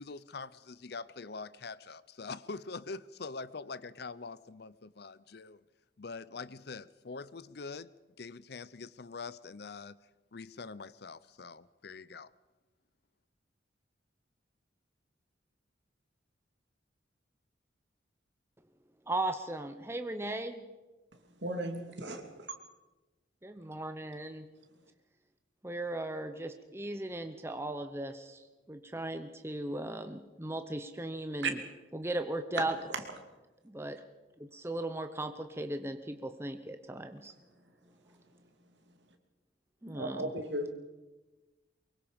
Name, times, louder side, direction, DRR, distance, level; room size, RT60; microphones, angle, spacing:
voice 1, 0.0-5.6 6.0-7.9 8.2-10.0 10.3-12.3, left 4 dB, 55° left, 18 dB, 0.6 m, -44 dB
voice 2, 19.1-20.6 23.4-24.5 25.6-31.6 31.9-32.7 33.6-34.0 34.4-37.3 39.8-40.3, right 1 dB, 15° right, 7 dB, 0.8 m, -37 dB
voice 3, 21.4-22.5 31.4-31.5 39.9-40.7, right 2 dB, 65° right, 5 dB, 2.7 m, -36 dB
24.0 x 22.0 x 5.2 m, 1.1 s
head